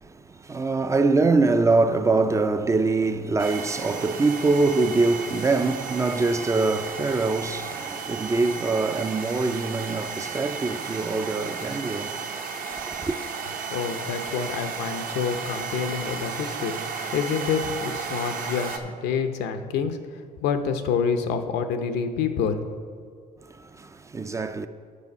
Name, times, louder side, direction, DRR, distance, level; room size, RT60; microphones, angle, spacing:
voice 1, 0.0-12.2 13.0-13.1 23.6-24.7, right 3 dB, 20° right, 0.3 m, -24 dB
sound 1, 3.4-18.8, right 5 dB, 60° right, 0.8 m, -34 dB
voice 2, 13.7-16.7 17.1-20.0 20.4-22.6, left 6 dB, 85° left, 0.7 m, -27 dB
8.3 x 6.6 x 5.4 m
cardioid pair, 110°, 17 cm